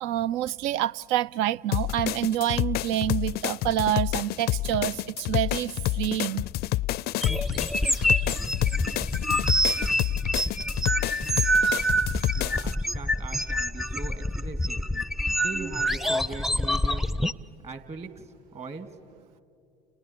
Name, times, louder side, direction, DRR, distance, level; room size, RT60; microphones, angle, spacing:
voice 1, 0.0-6.4 7.3-8.3, right 12 dB, 60° right, 0.4 m, -28 dB
sound 1, 1.7-12.7, left 16 dB, 50° left, 0.5 m, -29 dB
sound 2, 7.2-17.3, equal, ahead, 0.6 m, -26 dB
voice 2, 12.4-14.9 15.4-17.1 17.6-19.0, right 3 dB, 30° right, 2.3 m, -40 dB
30.0 x 29.5 x 4.5 m
hypercardioid pair, 75°, 21 cm